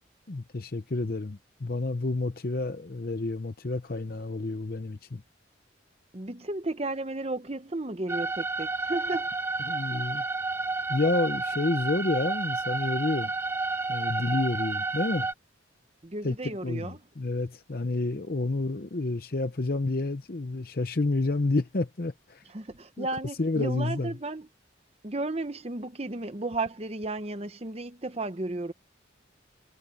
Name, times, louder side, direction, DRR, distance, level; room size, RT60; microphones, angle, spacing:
voice 1, 0.3-5.2 9.7-10.2 10.9-13.3 13.9-15.3 16.2-16.4 16.6-22.4 23.0-23.1 23.4-24.1, left 2 dB, 50° left, 0.7 m, -29 dB
voice 2, 6.1-9.3 16.0-17.0 22.5-24.5 25.0-28.7, right 2 dB, 30° right, 0.9 m, -33 dB
sound 1, 8.1-15.3, right 3 dB, 10° right, 0.4 m, -31 dB
head